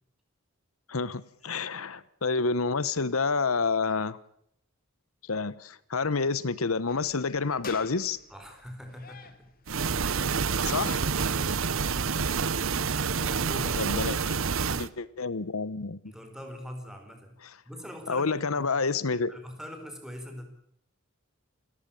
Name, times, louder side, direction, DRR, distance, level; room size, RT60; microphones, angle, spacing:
voice 1, 0.9-4.2 5.3-8.2 10.6-11.0 13.8-14.4 14.7-16.0 18.1-19.3, left 4 dB, 85° left, 1.0 m, -29 dB
sound 1, 6.9-12.9, left 5 dB, 45° left, 2.3 m, -50 dB
voice 2, 8.3-9.5 11.2-11.8 13.0-14.0 16.1-17.4 17.6-18.6 19.3-20.4, equal, 5° right, 4.9 m, -43 dB
sound 2, 9.7-14.9, right 5 dB, 70° right, 0.9 m, -28 dB
29.0 x 14.0 x 8.9 m
head